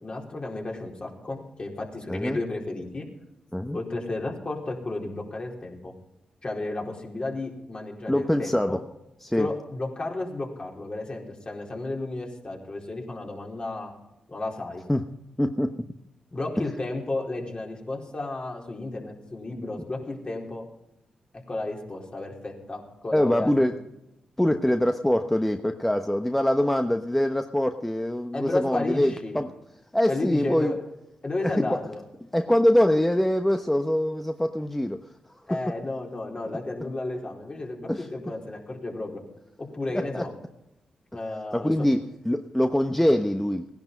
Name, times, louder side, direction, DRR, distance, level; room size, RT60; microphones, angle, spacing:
voice 1, 0.0-3.1 3.7-5.9 6.4-8.8 9.4-13.9 14.3-14.8 16.3-20.6 21.5-23.7 28.3-29.4 30.1-30.8 31.2-32.0 35.5-39.2 39.6-40.3 41.1-41.7, left 2 dB, 40° left, 0 dB, 4.3 m, -33 dB
voice 2, 2.1-2.4 3.5-3.8 8.1-8.8 9.2-9.5 14.9-15.0 15.4-16.0 16.6-16.7 23.1-23.8 24.4-29.5 29.9-30.7 31.4-31.8 32.3-35.0 37.9-38.1 40.1-40.2 41.5-43.7, left 1 dB, 10° left, 6 dB, 1.1 m, -24 dB
17.0 x 10.5 x 5.4 m, 0.89 s
supercardioid pair, 50°, 3 cm